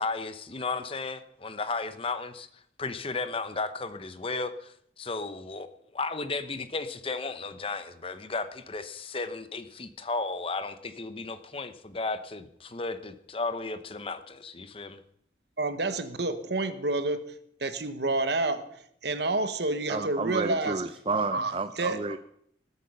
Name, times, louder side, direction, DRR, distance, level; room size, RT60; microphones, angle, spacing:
voice 1, 0.0-15.0, left 3 dB, 30° left, 11 dB, 0.8 m, -34 dB
voice 2, 15.6-17.3 17.6-18.6 19.0-20.8 21.3-22.0, right 2 dB, 65° right, 10 dB, 1.2 m, -29 dB
voice 3, 19.9-22.2, right 3 dB, 30° right, 11 dB, 0.5 m, -31 dB
19.5 x 8.3 x 5.6 m, 0.70 s
head